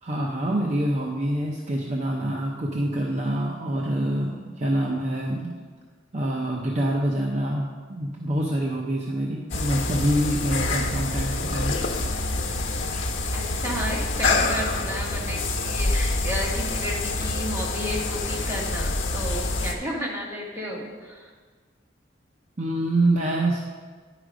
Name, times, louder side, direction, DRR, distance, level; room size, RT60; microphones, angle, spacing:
voice 1, 0.0-5.5 6.1-11.8 12.9-13.0 22.6-23.6, right 1 dB, 40° right, -1 dB, 0.7 m, -26 dB
sound 1, 9.5-19.7, left 2 dB, 85° left, 0.9 m, -26 dB
voice 2, 13.3-21.3, equal, 15° right, -3 dB, 1.5 m, -32 dB
10.0 x 5.0 x 5.0 m, 1.5 s
head